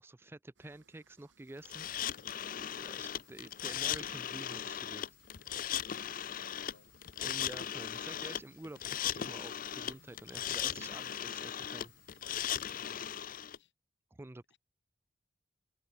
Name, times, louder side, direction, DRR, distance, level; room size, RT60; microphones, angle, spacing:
voice 1, 0.0-1.9 2.6-5.0 7.2-11.9 14.1-14.6, right 2 dB, 15° right, 0.4 m, -49 dB
sound 1, 0.6-13.3, right 4 dB, 80° right, 2.7 m, -69 dB
sound 2, 1.7-13.6, left 10 dB, 50° left, 0.5 m, -38 dB
voice 2, 5.2-6.9 9.9-10.1 12.2-13.7 14.5-14.6, left 4 dB, 70° left, 2.9 m, -63 dB
open air
head